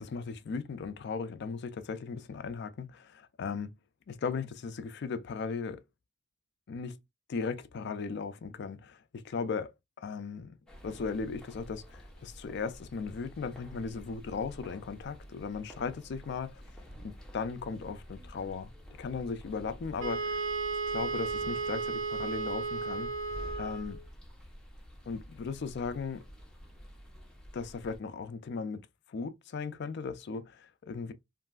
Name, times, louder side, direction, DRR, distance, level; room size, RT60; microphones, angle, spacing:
voice 1, 0.0-3.7 4.1-5.8 6.7-7.0 7.3-10.6 10.8-16.6 17.0-18.7 19.0-20.5 20.9-23.1 23.6-24.0 25.1-26.2 27.5-31.1, left 5 dB, 55° left, 0.3 m, -37 dB
sound 1, 10.7-28.0, equal, 5° left, 0.6 m, -49 dB
Wind instrument woodwind instrument, 20.0-24.0, right 4 dB, 60° right, 0.8 m, -34 dB
3.1 x 2.6 x 2.3 m
head